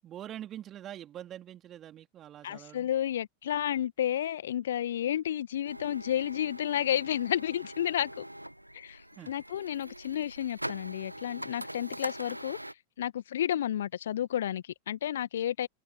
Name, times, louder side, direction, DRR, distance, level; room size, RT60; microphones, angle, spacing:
voice 1, 0.0-2.9 9.2-9.3, right 11 dB, 30° right, 3.9 m, -44 dB
voice 2, 2.4-8.3 8.7-9.0 9.3-12.6 13.0-15.7, left 11 dB, 60° left, 1.6 m, -31 dB
sound 1, 5.6-12.7, right 1 dB, 85° right, 1.6 m, -43 dB
figure-of-eight pair, 90°, 0 cm